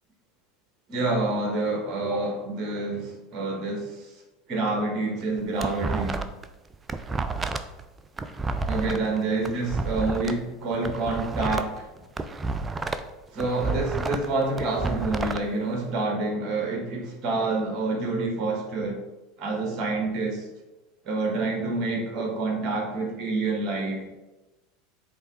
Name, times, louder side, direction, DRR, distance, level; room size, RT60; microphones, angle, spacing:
voice 1, 0.9-4.1 4.5-6.2 8.7-11.9 13.3-19.0 19.4-20.5 21.0-24.1, right 3 dB, 40° right, 1 dB, 1.4 m, -27 dB
sound 1, 5.2-6.5 6.7-10.3 10.7-13.1 13.4-15.4, right 3 dB, 20° right, 0.5 m, -30 dB
8.1 x 3.4 x 3.9 m, 1.1 s
hypercardioid pair, 85°, 0 cm